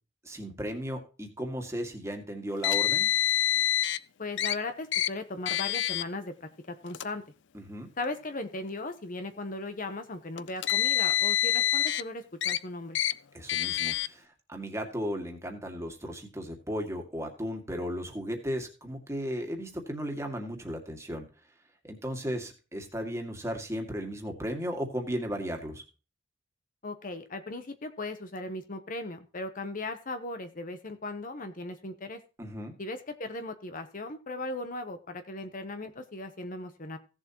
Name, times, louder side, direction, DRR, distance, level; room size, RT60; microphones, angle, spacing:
voice 1, 0.2-3.1 7.5-7.9 13.3-21.3 21.8-25.8 32.4-32.8, equal, 15° right, 3 dB, 2.0 m, -35 dB
Car, 2.6-4.0 4.4-4.5 4.9-5.1 5.5-6.0 6.9-7.0 8.0-8.1 10.4-12.0 12.4-12.6 12.9-13.1 13.5-14.1, left 11 dB, 60° left, 0.5 m, -26 dB
voice 2, 4.2-7.2 8.0-13.0 26.8-32.2 32.8-37.0, left 2 dB, 40° left, 9 dB, 0.9 m, -37 dB
16.5 x 7.3 x 3.0 m, 0.33 s
head